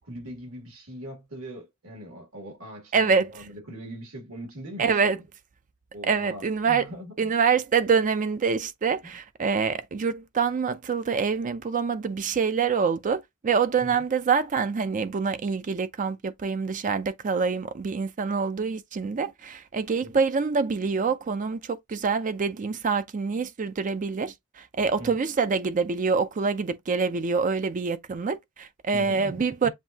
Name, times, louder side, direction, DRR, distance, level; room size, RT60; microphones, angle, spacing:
voice 1, 0.0-5.2 5.9-7.3 9.0-9.1 13.8-14.0 20.0-20.1 25.0-25.1 28.9-29.3 29.6-29.7, right 1 dB, 75° right, 2.4 m, -41 dB
voice 2, 2.9-3.3 4.8-5.2 6.0-6.9 7.2-29.7, right 5 dB, 40° right, 0.4 m, -26 dB
7.4 x 2.6 x 2.7 m
head